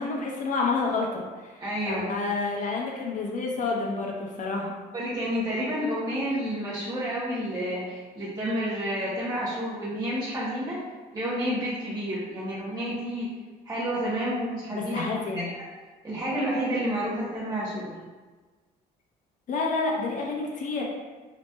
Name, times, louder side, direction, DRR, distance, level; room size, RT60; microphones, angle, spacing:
voice 1, 0.0-1.6 1.9-4.7 14.7-15.5 19.5-20.8, left 3 dB, 50° left, -1 dB, 0.8 m, -29 dB
voice 2, 1.6-2.2 4.9-10.8 11.1-13.3 13.7-15.1 15.3-15.4 16.0-18.0, equal, 25° right, -8 dB, 0.9 m, -30 dB
4.0 x 3.1 x 2.2 m, 1.3 s
cardioid pair, 110°, 17 cm